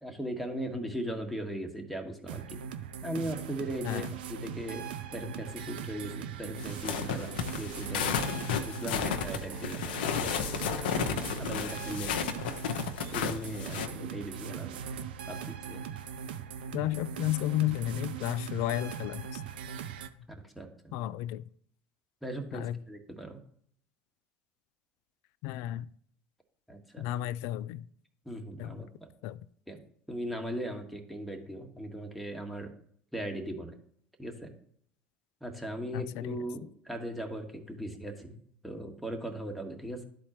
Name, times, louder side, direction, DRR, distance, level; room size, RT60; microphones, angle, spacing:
voice 1, 0.0-2.6 3.0-4.8 5.1-8.2 8.6-10.6 10.9-12.3 13.1-14.8 15.3-15.8 20.4-20.9 22.2-23.4 26.7-27.0 28.2-29.1 29.7-29.8 30.1-32.7 33.1-33.8 34.2-34.5 35.4-38.4 38.6-40.0, right 1 dB, ahead, 1.5 m, -38 dB
sound 1, 2.3-20.1, right 7 dB, 80° right, 0.5 m, -40 dB
sound 2, 6.6-13.9, left 7 dB, 80° left, 0.7 m, -33 dB
Bowed string instrument, 9.0-13.2, right 1 dB, 30° right, 2.9 m, -48 dB
voice 2, 16.7-19.4 20.9-21.4 22.5-22.8 25.4-25.9 27.0-27.9 28.6-28.9 29.2-29.4 35.9-36.4, left 14 dB, 65° left, 0.3 m, -32 dB
12.0 x 4.3 x 3.0 m
hypercardioid pair, 75°, 5 cm